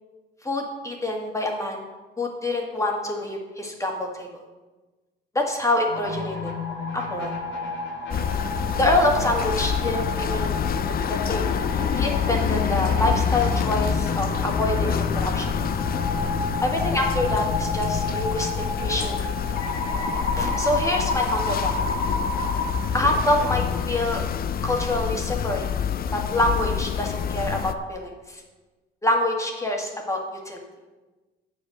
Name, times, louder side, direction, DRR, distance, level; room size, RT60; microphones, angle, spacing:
voice 1, 0.4-1.8 2.2-4.3 5.4-6.5 6.9-7.4 8.8-10.5 11.1-11.5 12.0-15.5 16.6-18.5 18.8-19.1 20.4-21.8 22.9-24.2 24.6-25.7 26.1-28.4 29.0-30.2 30.5-30.6, left 1 dB, 15° left, 1 dB, 1.8 m, -26 dB
sound 1, 5.9-22.7, left 2 dB, 70° left, 1.8 m, -30 dB
sound 2, 8.1-27.7, left 8 dB, 50° left, 0.5 m, -27 dB
8.4 x 5.2 x 6.5 m, 1.2 s
cardioid pair, 90°, 20 cm